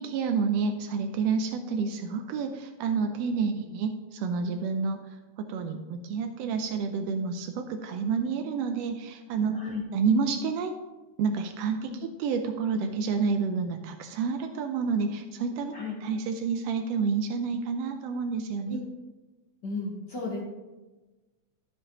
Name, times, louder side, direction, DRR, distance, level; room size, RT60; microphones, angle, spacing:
voice 1, 0.0-5.0 5.4-9.6 9.9-10.7 11.2-15.7 16.0-18.8, right 5 dB, 85° right, 6 dB, 1.4 m, -29 dB
voice 2, 19.6-20.4, left 3 dB, 55° left, -1 dB, 1.2 m, -34 dB
12.0 x 7.9 x 3.0 m, 1.2 s
omnidirectional pair, 3.5 m